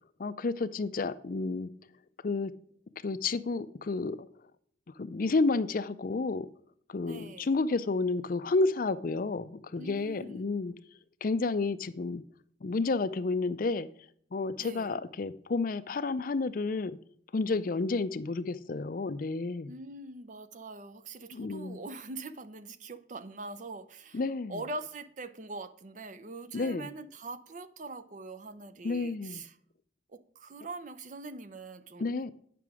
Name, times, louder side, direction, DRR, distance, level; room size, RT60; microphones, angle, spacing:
voice 1, 0.2-1.7 2.2-2.5 3.0-4.3 5.0-6.5 6.9-10.7 11.2-12.2 12.6-13.9 14.3-17.0 17.3-19.7 21.3-21.8 24.1-24.6 26.5-26.9 28.8-29.4 32.0-32.3, left 3 dB, 50° left, 0.4 m, -31 dB
voice 2, 7.0-7.5 9.8-10.4 14.6-15.0 19.7-24.2 24.5-29.6 30.1-32.1, right 3 dB, 45° right, 0.6 m, -43 dB
9.3 x 5.9 x 4.8 m
head